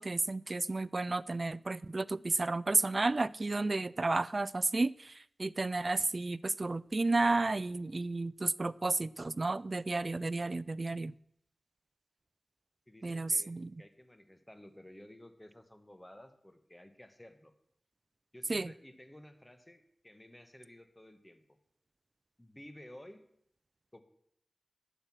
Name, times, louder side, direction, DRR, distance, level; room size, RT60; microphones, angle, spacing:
voice 1, 0.0-11.1 13.0-13.7 18.5-18.7, right 2 dB, 45° right, 20 dB, 0.3 m, -32 dB
voice 2, 12.9-17.5 18.3-21.6 22.4-23.2 23.9-24.0, left 1 dB, 15° left, 9 dB, 1.5 m, -54 dB
11.5 x 7.9 x 6.2 m, 0.71 s
cardioid pair, 50°, 0 cm